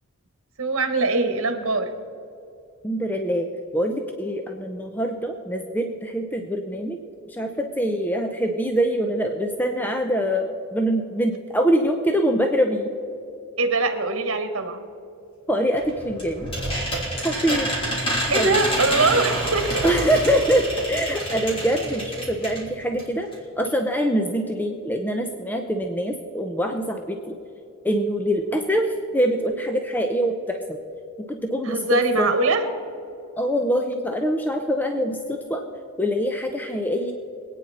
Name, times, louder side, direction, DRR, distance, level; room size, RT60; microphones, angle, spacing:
voice 1, 0.6-1.9 13.6-14.9 18.3-19.8 31.6-32.7, right 3 dB, 65° right, 7 dB, 1.5 m, -22 dB
voice 2, 2.8-3.5 3.7-7.0 7.3-12.9 15.5-16.5 17.2-17.7 18.3-18.6 19.8-23.3 23.6-27.4 27.8-30.8 31.3-32.3 33.4-35.6 36.0-37.1, equal, 10° left, 4 dB, 0.7 m, -24 dB
sound 1, 15.8-22.7 23.0-23.1 23.3-23.4, right 1 dB, 25° left, 3.2 m, -27 dB
24.5 x 9.2 x 4.2 m, 2.7 s
head